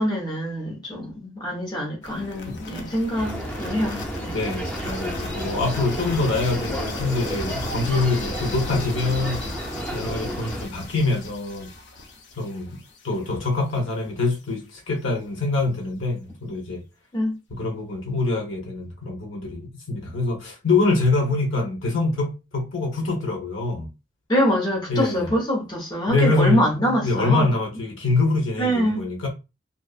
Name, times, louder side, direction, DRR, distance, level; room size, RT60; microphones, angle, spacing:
voice 1, 0.0-4.3 17.1-17.4 24.3-27.5 28.6-29.0, equal, 20° left, 0.9 m, -24 dB
sound 1, 2.0-13.9, left 2 dB, 65° left, 0.5 m, -36 dB
sound 2, 3.1-10.7, right 1 dB, 5° left, 0.5 m, -32 dB
voice 2, 4.3-9.4 9.9-11.7 12.4-12.8 13.0-16.8 17.5-23.9 24.9-25.3 26.1-29.3, left 3 dB, 90° left, 0.9 m, -25 dB
2.6 x 2.3 x 2.4 m
head